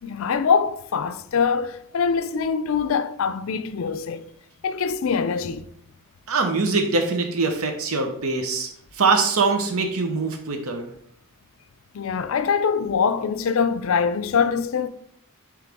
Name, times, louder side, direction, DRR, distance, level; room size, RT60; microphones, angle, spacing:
voice 1, 0.0-4.3 4.6-5.7 11.9-14.9, left 6 dB, 60° left, 0.4 m, -23 dB
voice 2, 6.3-10.9, right 4 dB, 70° right, 0.9 m, -23 dB
9.7 x 3.2 x 3.5 m
head